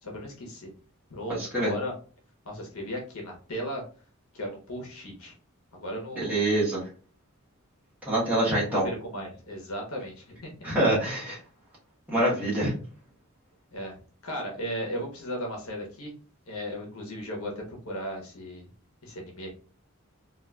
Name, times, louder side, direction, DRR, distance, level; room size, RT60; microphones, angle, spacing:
voice 1, 0.0-0.7 1.1-1.9 2.4-3.8 4.3-5.3 5.7-6.4 8.2-8.6 8.8-10.7 13.7-14.0 14.2-16.1 16.5-18.7 19.0-19.5, equal, 80° left, 0 dB, 1.0 m, -36 dB
voice 2, 1.3-1.7 6.2-6.9 8.0-8.8 10.6-11.4 12.1-12.7, right 1 dB, 5° right, -8 dB, 1.1 m, -25 dB
3.8 x 2.5 x 2.3 m, 0.38 s
head